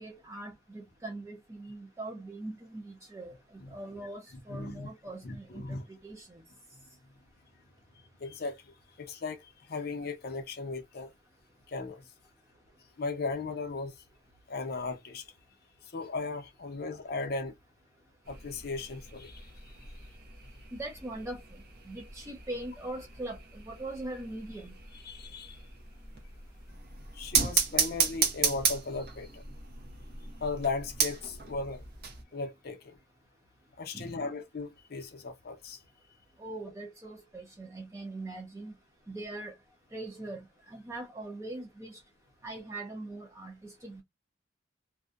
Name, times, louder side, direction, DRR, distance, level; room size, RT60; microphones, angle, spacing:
voice 1, 0.0-3.3 3.7-6.4 20.7-21.4 21.9-24.7 33.9-34.1 36.4-38.7 39.1-39.6 39.9-42.0 42.4-44.0, right 2 dB, 15° right, 0.4 m, -41 dB
voice 2, 4.5-4.9 5.2-5.8 8.2-8.6 9.0-9.4 9.7-11.1 11.7-12.0 13.0-13.9 14.5-15.2 15.9-17.6 18.3-19.4 24.9-25.6 27.1-29.4 30.4-31.8 32.3-33.0 33.8-35.8, left 3 dB, 55° left, 0.6 m, -36 dB
sound 1, 18.2-32.2, right 6 dB, 55° right, 0.7 m, -35 dB
2.6 x 2.1 x 2.3 m
head